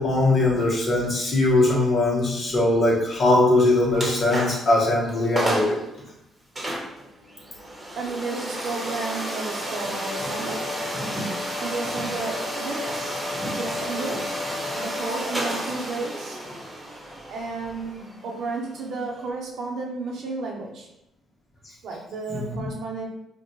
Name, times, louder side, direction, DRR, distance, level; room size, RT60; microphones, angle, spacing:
voice 1, 0.0-5.8 22.3-22.5, left 2 dB, 45° left, -3 dB, 1.3 m, -21 dB
sound 1, 3.9-4.7 5.1-5.2 5.3-5.8 6.5-19.3, equal, 10° right, 1.2 m, -31 dB
voice 2, 8.0-10.7 11.6-13.1 13.5-14.3 14.8-16.4 17.3-20.9 21.8-23.1, right 3 dB, 70° right, 0 dB, 0.9 m, -32 dB
5.2 x 2.5 x 3.1 m, 0.83 s
cardioid pair, 90°, 0 cm